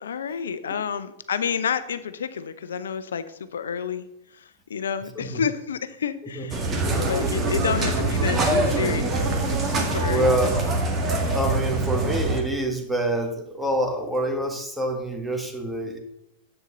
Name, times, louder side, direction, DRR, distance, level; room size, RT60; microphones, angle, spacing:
voice 1, 0.0-4.1 4.3-10.7, left 7 dB, 70° left, 13 dB, 0.7 m, -30 dB
sound 1, 6.5-12.4, right 2 dB, 25° right, 2.0 m, -24 dB
voice 2, 10.1-10.6 11.3-16.0, right 1 dB, 5° right, 3 dB, 1.8 m, -26 dB
10.0 x 8.2 x 3.8 m, 0.79 s
figure-of-eight pair, 95°, 0 cm